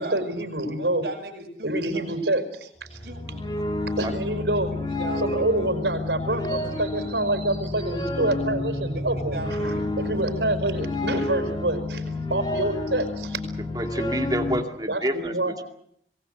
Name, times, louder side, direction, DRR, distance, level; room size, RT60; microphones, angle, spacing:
voice 1, 0.0-1.0 1.6-3.0 4.0-4.7 5.2-13.4 14.9-15.5, right 1 dB, 75° right, 7 dB, 5.0 m, -27 dB
voice 2, 0.8-2.0 3.0-3.5 4.9-5.7 6.3-6.4 6.7-7.1 9.0-9.9 10.2-10.5, right 2 dB, 60° right, 1 dB, 7.5 m, -37 dB
sound 1, 2.8-14.6, left 2 dB, 25° left, 2.7 m, -30 dB
voice 3, 13.7-15.3, right 1 dB, 20° right, 5 dB, 2.3 m, -27 dB
27.0 x 19.0 x 7.9 m, 0.70 s
head